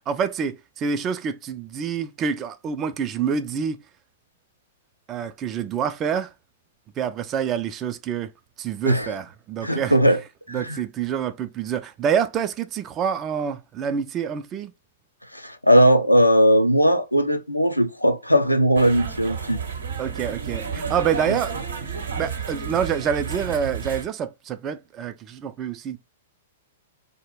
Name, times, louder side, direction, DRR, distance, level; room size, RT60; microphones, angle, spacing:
voice 1, 0.1-3.8 5.1-6.3 7.0-8.3 8.6-10.0 10.5-14.7 20.0-21.5 22.2-26.0, right 7 dB, 25° right, 0.3 m, -27 dB
voice 2, 9.6-10.2 10.5-10.8 15.3-19.6, equal, 90° left, 0.4 m, -18 dB
sound 1, 18.7-24.1, right 6 dB, 70° right, 0.7 m, -31 dB
2.3 x 2.0 x 3.1 m
figure-of-eight pair, 105°, 0 cm